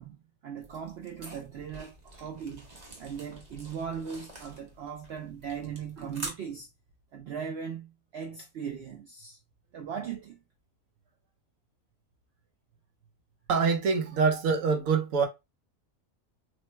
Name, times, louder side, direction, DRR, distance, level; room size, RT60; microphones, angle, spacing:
voice 1, 0.0-2.7 3.0-6.7 7.1-9.4 9.7-10.4, right 7 dB, 60° right, 0.7 m, -39 dB
sound 1, 0.6-6.3, right 2 dB, 35° right, 1.0 m, -46 dB
voice 2, 13.5-15.3, right 5 dB, 80° right, 1.1 m, -25 dB
3.1 x 2.1 x 4.2 m
omnidirectional pair, 1.4 m